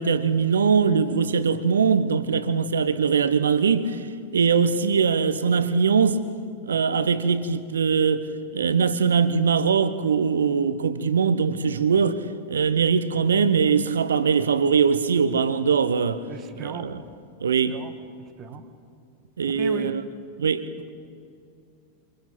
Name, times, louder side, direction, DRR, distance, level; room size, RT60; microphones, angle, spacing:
voice 1, 0.0-4.0 4.3-6.2 6.7-8.3 8.5-12.2 12.5-16.2 16.6-17.0 17.4-17.8 19.4-20.0 20.4-20.7, right 6 dB, 70° right, 1.1 m, -21 dB
voice 2, 16.3-16.9 17.7-17.9 18.4-18.6 19.5-19.9, right 7 dB, 30° right, 1.6 m, -36 dB
28.0 x 28.0 x 4.5 m
figure-of-eight pair, 90°, 0 cm